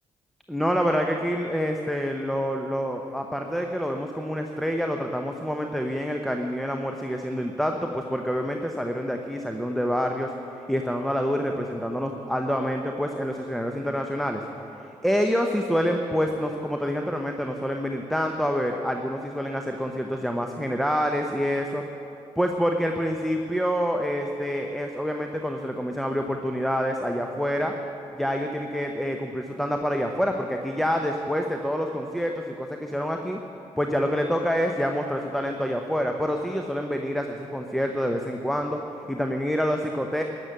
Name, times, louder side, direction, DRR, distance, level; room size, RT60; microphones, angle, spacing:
voice 1, 0.5-10.3 10.7-14.4 14.8-21.8 22.4-27.7 28.1-33.4 33.8-38.8 39.1-40.2, equal, ahead, 3 dB, 0.9 m, -27 dB
13.0 x 6.9 x 9.0 m, 2.8 s
hypercardioid pair, 40°, 15 cm